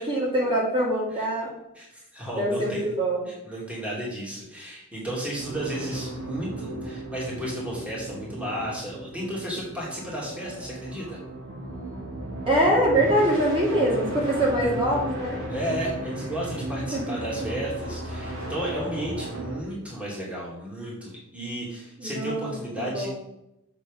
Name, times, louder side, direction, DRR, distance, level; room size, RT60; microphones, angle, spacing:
voice 1, 0.0-1.5 2.4-3.3 12.5-15.4 16.9-17.0 17.4-17.5 22.0-22.5 22.9-23.2, right 1 dB, 25° right, -4 dB, 2.7 m, -24 dB
voice 2, 1.7-2.9 3.4-11.2 15.5-23.2, right 1 dB, 5° right, -5 dB, 2.7 m, -33 dB
sound 1, 5.4-19.6, right 1 dB, 65° right, 3.0 m, -35 dB
7.5 x 6.7 x 5.4 m, 0.85 s
head